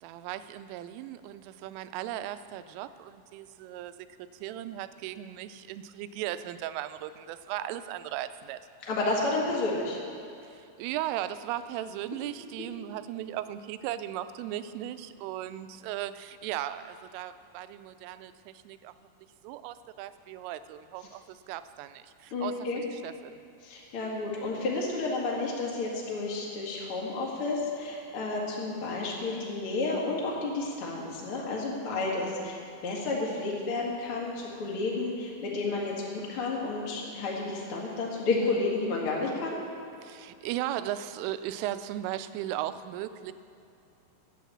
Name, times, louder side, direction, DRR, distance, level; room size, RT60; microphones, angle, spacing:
voice 1, 0.0-8.6 10.4-18.9 19.4-22.5 22.8-23.4 40.0-43.3, right 12 dB, 90° right, 12 dB, 3.1 m, -37 dB
voice 2, 8.9-10.0 22.3-22.8 23.6-39.6, left 3 dB, 50° left, -4 dB, 1.6 m, -31 dB
11.5 x 8.4 x 7.3 m, 2.6 s
omnidirectional pair, 5.6 m